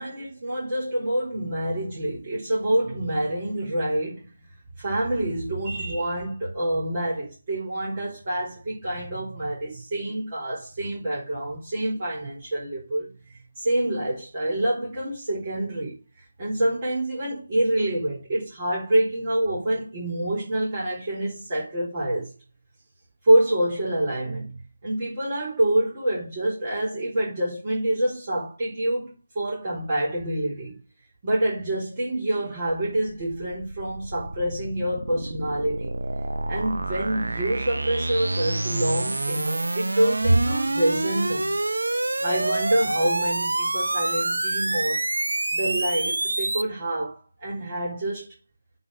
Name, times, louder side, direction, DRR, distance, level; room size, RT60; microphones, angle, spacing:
voice 1, 0.0-4.3 4.8-16.0 16.4-22.3 23.2-24.5 24.8-30.8 31.2-36.0 36.5-41.6 42.2-45.0 45.5-48.3, right 1 dB, 25° right, 4.2 m, -26 dB
sound 1, 32.7-46.6, right 2 dB, 65° right, 0.7 m, -27 dB
8.6 x 4.3 x 7.2 m
figure-of-eight pair, 155°, 0 cm